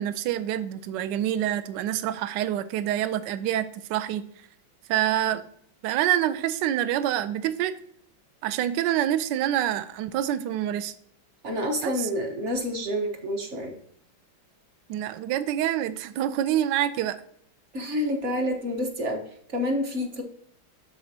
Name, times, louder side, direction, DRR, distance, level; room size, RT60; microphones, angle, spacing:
voice 1, 0.0-4.2 4.9-5.4 5.8-7.8 8.4-10.9 11.8-12.1 14.9-17.2, right 11 dB, 75° right, 12 dB, 1.1 m, -26 dB
voice 2, 11.4-13.8 17.7-20.2, left 1 dB, 45° right, 3 dB, 1.1 m, -28 dB
12.5 x 4.3 x 2.7 m, 0.65 s
omnidirectional pair, 2.2 m